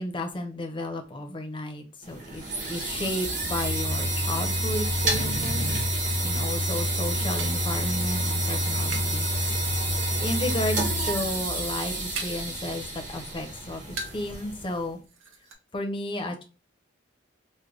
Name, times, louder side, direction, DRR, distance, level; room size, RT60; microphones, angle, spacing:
voice 1, 0.0-5.6 6.2-9.5 10.2-15.0 15.7-16.4, left 1 dB, 25° left, 3 dB, 0.6 m, -33 dB
sound 1, 2.0-14.8, right 1 dB, 40° right, 1.0 m, -28 dB
sound 2, 7.4-9.2 9.5-10.0 10.5-11.0 11.3-12.6 12.9-14.3 14.7-14.8 15.0-15.5, right 3 dB, 90° right, 0.8 m, -41 dB
3.2 x 2.1 x 3.6 m, 0.32 s
head